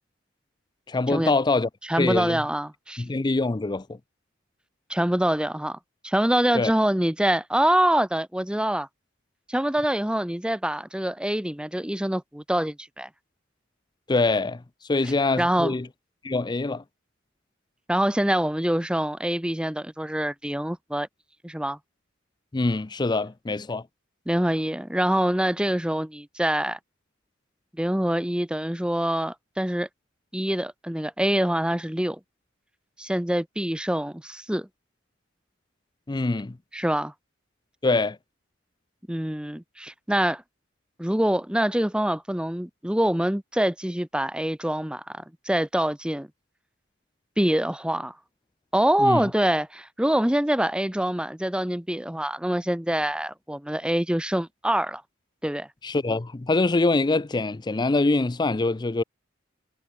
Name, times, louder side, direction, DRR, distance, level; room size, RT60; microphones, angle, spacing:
voice 1, 0.9-1.7 2.0-2.4 3.0-4.0 6.5-6.7 14.1-14.6 14.9-15.9 16.2-16.8 22.5-23.8 36.1-36.6 37.8-38.2 49.0-49.3 55.8-59.0, left 3 dB, 20° left, 0.5 m, -24 dB
voice 2, 1.9-3.0 4.9-5.8 6.0-8.9 9.5-13.1 15.4-15.7 17.9-21.1 21.4-21.8 24.3-26.8 27.8-29.9 30.3-32.2 33.0-34.7 36.7-37.1 39.1-40.4 41.0-46.3 47.4-48.1 48.7-55.0 55.4-55.7, right 1 dB, 5° right, 0.8 m, -25 dB
head